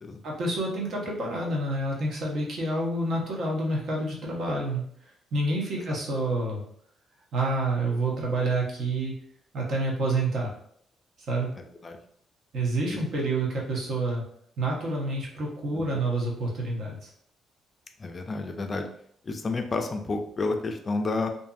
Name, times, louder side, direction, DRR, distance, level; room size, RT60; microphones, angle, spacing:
voice 1, 0.2-4.8 5.3-6.6 7.3-9.1 9.5-10.5 11.3-11.5 12.5-14.2 14.6-17.1, right 2 dB, 65° right, -2 dB, 0.9 m, -28 dB
voice 2, 11.6-12.0 12.9-13.0 15.7-16.0 18.0-18.8 19.2-21.3, left 3 dB, 35° left, 5 dB, 0.3 m, -31 dB
2.6 x 2.5 x 2.3 m, 0.65 s
cardioid pair, 90°, 0 cm